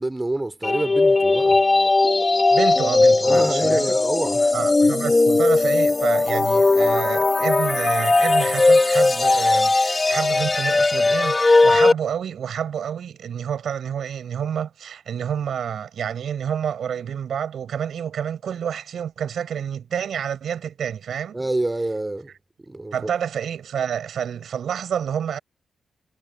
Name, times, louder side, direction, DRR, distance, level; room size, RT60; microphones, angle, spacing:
voice 1, 0.0-1.6 3.2-4.5 21.3-22.3 22.7-23.1, right 2 dB, 25° right, 2.8 m, -27 dB
sound 1, 0.6-11.9, left 3 dB, 35° left, 1.6 m, -18 dB
voice 2, 2.5-4.0 4.5-21.4 22.9-25.4, right 8 dB, 80° right, 5.9 m, -28 dB
supercardioid pair, 45°, 0 cm